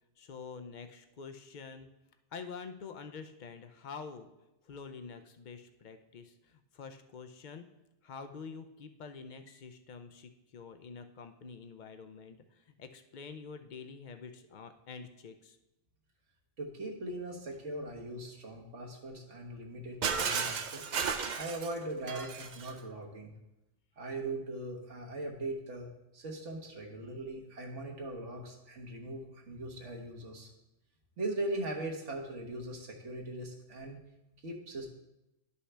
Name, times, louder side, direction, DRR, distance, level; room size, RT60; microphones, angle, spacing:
voice 1, 0.2-1.9 2.3-4.3 4.6-7.6 8.0-15.6, left 5 dB, 55° left, 8 dB, 0.6 m, -47 dB
voice 2, 16.6-20.9 21.4-23.3 24.0-25.9 26.1-30.5 31.2-34.0 34.4-34.9, right 2 dB, 75° right, 0 dB, 1.5 m, -40 dB
Shatter, 20.0-22.8, right 6 dB, 55° right, 0.5 m, -34 dB
11.0 x 5.5 x 3.3 m, 0.93 s
omnidirectional pair, 1.2 m